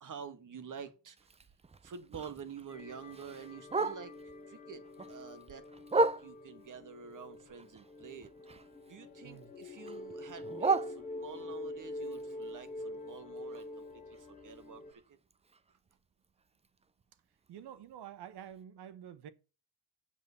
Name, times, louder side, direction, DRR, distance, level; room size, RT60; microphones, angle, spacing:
voice 1, 0.0-1.2 1.8-4.1 4.5-5.6 5.9-8.3 8.9-14.8 15.1-15.2, right 6 dB, 40° right, 1.8 m, -48 dB
Bark, 1.2-4.4 4.8-6.7 7.1-9.0 9.2-11.6 12.0-15.9 16.2-16.3 16.6-17.0 17.5-17.6 17.9-18.0 18.5-18.6, right 3 dB, 15° right, 0.6 m, -37 dB
sound 1, 2.7-14.9, left 1 dB, 15° left, 1.7 m, -46 dB
voice 2, 17.5-19.3, right 10 dB, 55° right, 1.3 m, -48 dB
7.3 x 7.3 x 7.0 m
supercardioid pair, 85°, 47 cm